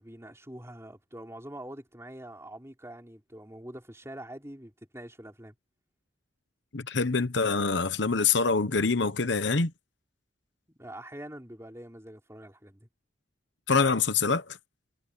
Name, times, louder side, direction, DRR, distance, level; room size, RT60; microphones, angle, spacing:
voice 1, 0.0-5.5 10.7-12.8, right 1 dB, 15° right, 4.3 m, -44 dB
voice 2, 6.7-9.7 13.7-14.6, left 4 dB, 60° left, 1.1 m, -25 dB
head